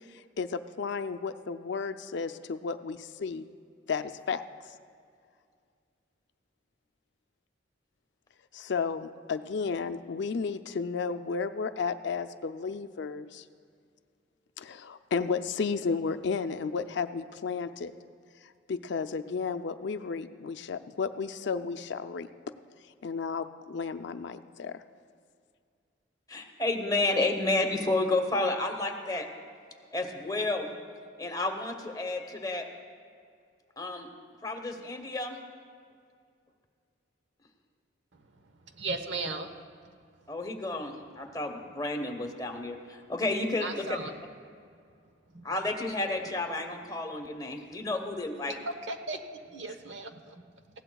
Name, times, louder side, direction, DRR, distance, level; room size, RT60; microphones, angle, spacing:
voice 1, 0.1-3.5 3.9-4.4 8.5-13.4 14.6-18.0 18.7-22.3 23.0-24.8, left 5 dB, 65° left, 11 dB, 0.5 m, -33 dB
voice 2, 26.3-29.3 29.9-30.7 31.2-32.7 33.8-34.1 34.4-35.4 40.3-44.0 45.4-48.6, left 2 dB, 20° left, 4 dB, 1.1 m, -31 dB
voice 3, 38.7-39.5 43.6-44.1 45.3-45.4 48.7-49.2 49.5-50.4, right 3 dB, 75° right, 7 dB, 1.0 m, -36 dB
19.5 x 16.0 x 2.3 m, 2.2 s
head